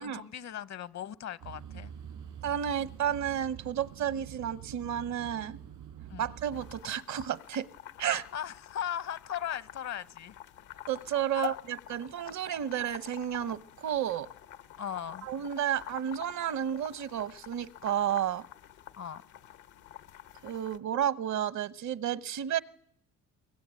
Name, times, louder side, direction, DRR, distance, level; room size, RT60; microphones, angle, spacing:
voice 1, 0.0-1.9 6.1-6.3 8.3-10.4 11.3-11.6 14.8-15.3 18.9-19.2, left 10 dB, 60° left, 16 dB, 1.0 m, -37 dB
sound 1, 1.4-6.8, right 9 dB, 90° right, 5.7 m, -46 dB
voice 2, 2.4-5.6 6.2-7.7 8.0-8.3 10.9-11.5 11.9-14.3 15.2-18.5 20.4-22.6, right 10 dB, 70° right, 16 dB, 1.0 m, -32 dB
sound 2, 6.5-20.8, left 11 dB, 85° left, 1.2 m, -50 dB
24.0 x 21.5 x 9.0 m, 0.69 s
cardioid pair, 90°, 30 cm